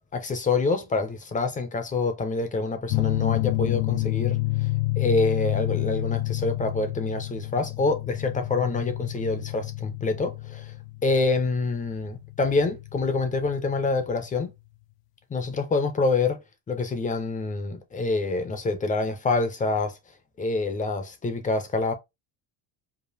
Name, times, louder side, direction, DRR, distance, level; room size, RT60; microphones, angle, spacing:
voice 1, 0.1-4.7 5.0-10.7 11.0-14.5 15.3-16.4 16.7-20.0 20.4-21.9, left 3 dB, 20° left, 0.4 m, -26 dB
sound 1, 2.9-14.1, left 21 dB, 70° left, 0.5 m, -29 dB
4.9 x 2.4 x 2.6 m
cardioid pair, 175°, 47 cm